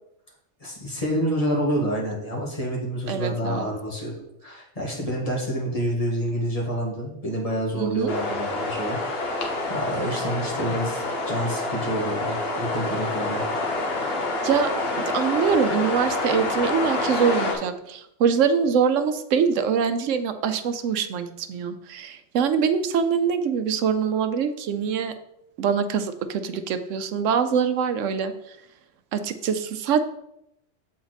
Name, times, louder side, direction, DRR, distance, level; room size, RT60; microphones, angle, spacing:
voice 1, 0.6-9.0 9.7-13.4, equal, 30° left, -4 dB, 1.8 m, -28 dB
voice 2, 3.1-3.7 7.8-8.1 14.4-14.7 15.0-25.1 25.6-28.3 29.1-30.0, right 6 dB, 85° right, 9 dB, 1.0 m, -24 dB
sound 1, 8.1-17.5, left 2 dB, 55° left, 1.2 m, -27 dB
7.1 x 4.3 x 4.0 m, 0.80 s
omnidirectional pair, 1.3 m